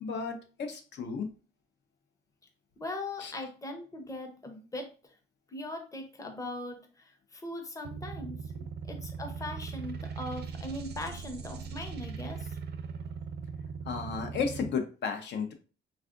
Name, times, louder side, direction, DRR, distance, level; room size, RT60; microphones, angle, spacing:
voice 1, 0.0-1.3 3.2-3.3 8.6-8.7 13.9-15.5, left 5 dB, 65° left, 5 dB, 0.6 m, -33 dB
voice 2, 2.8-4.9 5.5-8.4 8.8-12.5, left 2 dB, 15° left, 4 dB, 0.7 m, -40 dB
sound 1, 7.8-14.7, right 5 dB, 55° right, 0.4 m, -40 dB
3.4 x 2.4 x 2.4 m, 0.36 s
cardioid pair, 90°, 20 cm